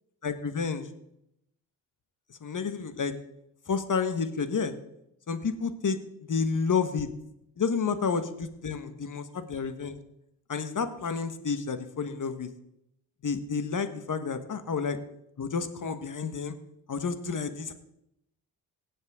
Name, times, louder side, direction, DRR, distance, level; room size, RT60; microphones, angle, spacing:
voice 1, 0.2-0.9 2.3-3.1 3.7-4.7 5.3-7.1 7.6-10.0 10.5-12.5 13.2-15.0 15.4-16.6 16.9-17.7, left 5 dB, 40° left, 10 dB, 1.5 m, -30 dB
17.5 x 7.6 x 3.7 m, 0.79 s
supercardioid pair, 50°, 46 cm